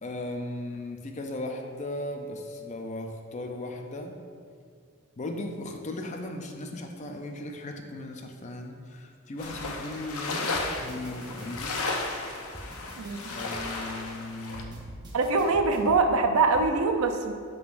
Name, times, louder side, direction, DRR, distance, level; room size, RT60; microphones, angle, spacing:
voice 1, 0.0-4.2 5.2-11.9 13.3-14.8, left 1 dB, 30° left, 3 dB, 0.5 m, -37 dB
sound 1, 9.4-14.6, left 3 dB, 80° left, 0.7 m, -34 dB
sound 2, 9.5-9.7 10.5-11.7 12.5-13.7 14.5-16.0 16.5-16.7, equal, 20° right, 0.7 m, -44 dB
voice 2, 13.0-13.3 15.1-17.3, right 3 dB, 75° right, 5 dB, 0.5 m, -23 dB
11.5 x 3.9 x 2.5 m, 2.2 s
head